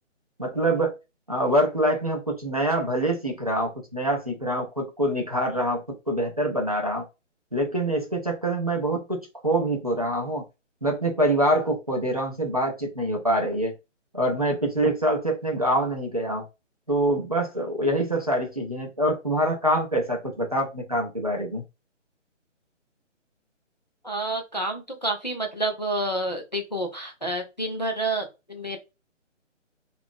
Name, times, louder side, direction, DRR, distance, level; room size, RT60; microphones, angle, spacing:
voice 1, 0.4-0.9 1.3-7.0 7.5-10.4 10.8-13.7 14.1-16.4 16.9-21.6, right 1 dB, 30° right, 0.5 m, -25 dB
voice 2, 24.0-28.8, right 2 dB, 35° left, 0.4 m, -29 dB
2.9 x 2.4 x 3.3 m
hypercardioid pair, 175°, 37 cm